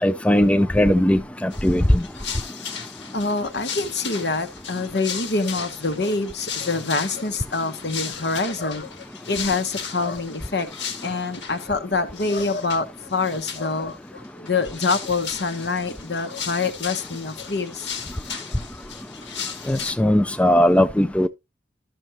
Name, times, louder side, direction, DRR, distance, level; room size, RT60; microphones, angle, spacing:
voice 1, 0.0-2.0 19.7-21.3, left 1 dB, 5° left, 0.4 m, -18 dB
sound 1, 1.5-11.6 12.1-12.8 13.1-13.9 14.2-19.9, left 7 dB, 80° left, 1.3 m, -36 dB
voice 2, 3.1-10.7 11.0-18.1, left 3 dB, 65° left, 1.1 m, -26 dB
12.5 x 6.3 x 2.9 m
head